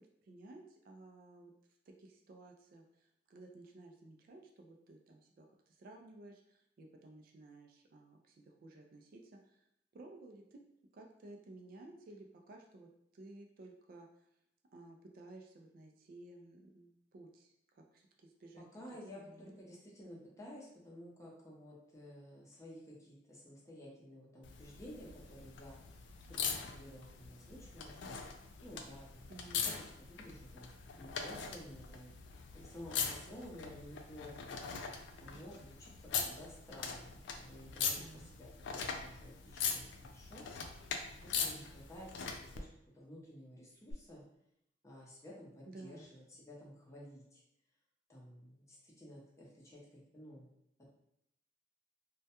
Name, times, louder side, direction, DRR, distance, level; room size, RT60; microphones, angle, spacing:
voice 1, 0.2-1.5 1.9-9.6 9.9-10.6 10.9-14.1 14.7-18.7 19.2-19.4 29.3-29.7 37.9-38.3 45.7-46.1, right 2 dB, 55° right, 2 dB, 0.3 m, -55 dB
voice 2, 18.6-25.8 26.3-28.2 28.6-30.7 31.0-32.1 32.5-34.6 35.2-40.4 41.1-42.7 42.9-44.2 44.8-47.4 48.1-50.5, equal, 15° left, -4 dB, 0.6 m, -53 dB
sound 1, 24.4-42.6 43.9-44.0, left 6 dB, 80° left, 0.3 m, -42 dB
2.2 x 2.1 x 2.8 m, 0.79 s
head